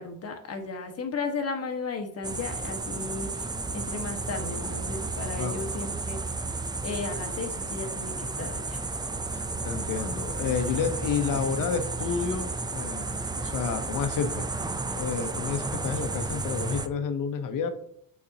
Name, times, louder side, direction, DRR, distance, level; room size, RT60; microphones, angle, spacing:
voice 1, 0.0-6.2 6.8-8.8, left 4 dB, 45° left, 5 dB, 1.3 m, -35 dB
sound 1, 2.2-16.9, right 3 dB, 10° right, 0.4 m, -32 dB
voice 2, 9.3-14.4 14.9-17.7, left 6 dB, 65° left, 9 dB, 0.8 m, -30 dB
8.4 x 4.2 x 2.8 m, 0.65 s
cardioid pair, 95°, 34 cm